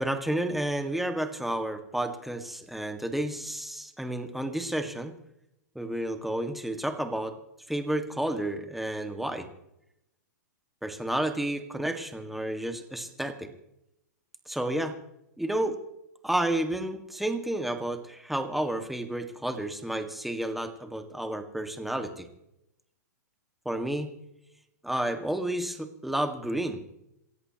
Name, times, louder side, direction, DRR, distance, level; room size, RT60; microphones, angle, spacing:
voice 1, 0.0-5.1 5.8-7.4 7.7-9.5 10.8-13.5 14.5-15.0 15.4-15.8 16.2-22.3 23.7-24.1 24.8-26.8, right 1 dB, ahead, 7 dB, 1.8 m, -31 dB
27.5 x 13.5 x 3.0 m, 0.84 s
hypercardioid pair, 120°, 9 cm